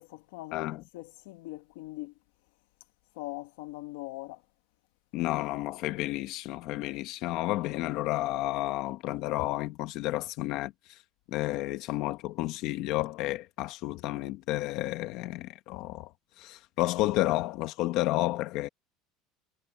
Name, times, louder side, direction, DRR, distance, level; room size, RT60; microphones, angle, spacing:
voice 1, 0.0-0.7 0.9-2.1 3.1-4.4, left 19 dB, 90° left, 1.5 m, -41 dB
voice 2, 0.5-0.8 5.1-11.0 11.3-16.1 16.4-18.7, left 17 dB, 55° left, 1.2 m, -31 dB
cardioid pair, 155°, 0 cm